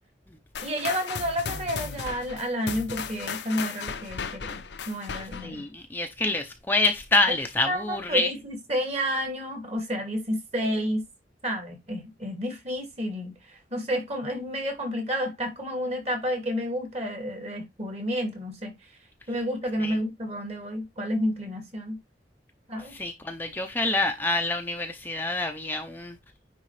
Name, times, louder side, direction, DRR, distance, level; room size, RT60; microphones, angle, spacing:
sound 1, 0.5-5.6, left 6 dB, 75° left, 0.7 m, -35 dB
voice 1, 0.6-5.6 7.7-11.1 11.4-13.3 13.7-18.8 19.3-22.0 22.7-22.9, equal, 35° right, 2.5 m, -30 dB
voice 2, 5.4-8.3 19.8-20.0 22.9-26.2, left 2 dB, 10° left, 0.6 m, -27 dB
9.5 x 3.6 x 3.3 m
head